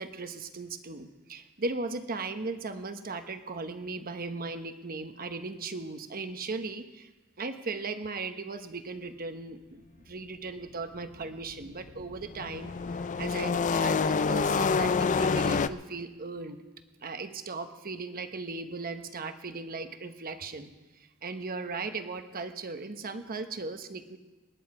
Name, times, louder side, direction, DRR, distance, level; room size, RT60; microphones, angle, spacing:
voice 1, 0.0-7.1 7.4-12.7 13.0-16.6 17.0-20.7 21.2-24.2, right 3 dB, 40° right, 8 dB, 1.0 m, -37 dB
sound 1, 11.6-15.7, left 5 dB, 35° left, 0.4 m, -27 dB
27.0 x 10.0 x 4.9 m, 1.1 s
head